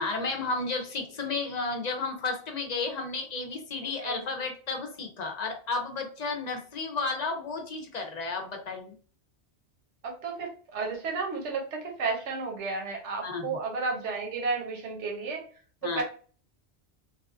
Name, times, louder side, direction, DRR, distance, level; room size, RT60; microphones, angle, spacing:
voice 1, 0.0-9.0 13.2-13.6 15.8-16.0, left 3 dB, 45° left, 4 dB, 0.6 m, -32 dB
voice 2, 10.0-15.4 15.8-16.0, right 4 dB, 80° right, 2 dB, 1.1 m, -32 dB
3.3 x 2.3 x 2.4 m, 0.42 s
omnidirectional pair, 1.2 m